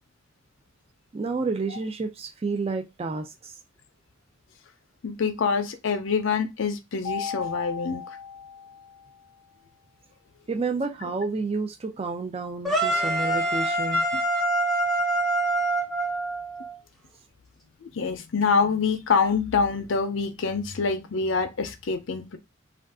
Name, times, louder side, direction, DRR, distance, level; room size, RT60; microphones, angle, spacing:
voice 1, 1.1-3.5 10.5-14.0, right 4 dB, 30° right, 0.3 m, -30 dB
voice 2, 5.0-8.0 17.8-22.4, left 5 dB, 75° left, 0.5 m, -25 dB
Mallet percussion, 7.0-9.3, left 6 dB, 70° right, 1.4 m, -36 dB
sound 1, 12.6-16.7, right 1 dB, ahead, 0.6 m, -25 dB
2.5 x 2.3 x 3.4 m
head